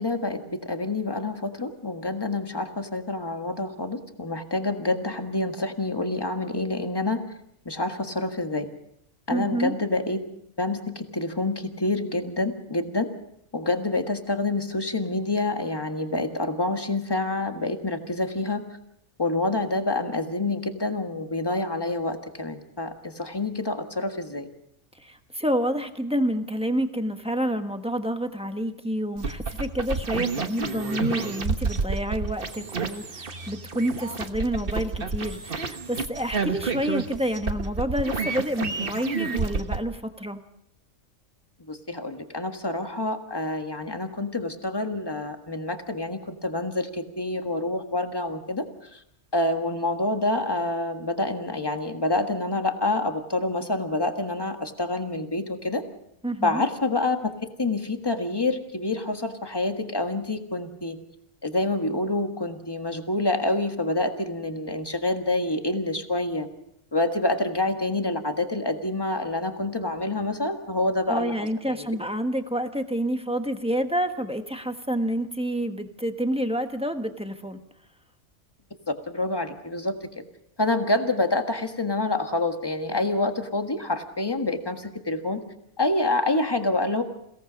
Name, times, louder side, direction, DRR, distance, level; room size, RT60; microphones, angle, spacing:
voice 1, 0.0-7.2 7.6-8.7 9.3-10.2 10.6-13.1 13.5-18.6 19.2-24.5 41.7-48.6 48.9-49.0 49.3-55.8 56.4-57.3 57.6-61.0 61.4-66.5 66.9-71.8 79.1-80.0 80.6-85.4 85.8-87.0, left 2 dB, 20° left, 5 dB, 1.6 m, -27 dB
voice 2, 9.3-9.7 25.0-40.4 56.2-56.6 71.1-77.6, equal, 5° right, 6 dB, 1.2 m, -28 dB
sound 1, 29.2-39.8, right 4 dB, 45° right, 1.4 m, -30 dB
28.5 x 17.5 x 5.2 m, 0.74 s
omnidirectional pair, 1.3 m